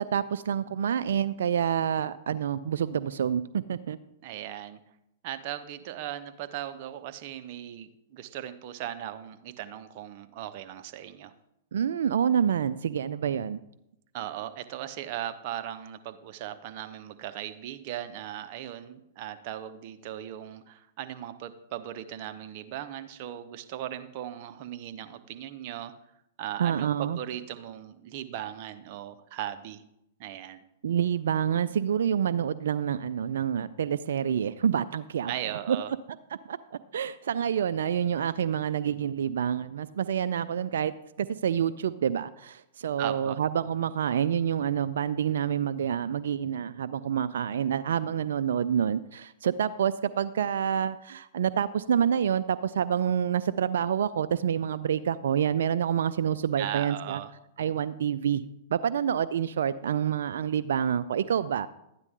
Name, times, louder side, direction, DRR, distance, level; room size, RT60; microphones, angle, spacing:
voice 1, 0.0-4.0 11.7-13.6 26.6-27.2 30.8-35.3 35.7-35.8 36.5-40.9 41.2-57.2 57.6-58.4 58.7-61.7, right 8 dB, 75° right, 13 dB, 0.4 m, -27 dB
voice 2, 4.2-4.8 5.2-11.3 14.1-25.9 26.4-29.8 30.2-30.6 35.3-35.9 43.0-43.4 56.6-57.3, right 11 dB, 50° right, 9 dB, 0.9 m, -38 dB
12.5 x 9.6 x 3.7 m, 0.82 s
hypercardioid pair, 115°, 0 cm